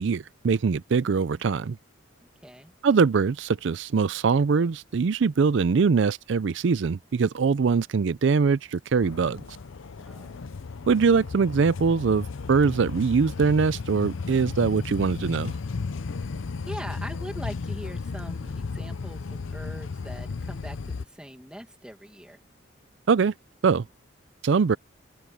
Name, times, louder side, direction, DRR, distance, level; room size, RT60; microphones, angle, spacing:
voice 1, 0.0-1.8 2.8-9.4 10.9-15.5 23.1-23.3 23.6-23.8 24.4-24.8, right 5 dB, 65° right, 0.4 m, -22 dB
voice 2, 2.4-2.7 10.0-10.4 10.8-10.9 16.7-22.4, equal, 5° right, 1.9 m, -42 dB
sound 1, 9.0-21.0, left 4 dB, 80° left, 0.6 m, -34 dB
head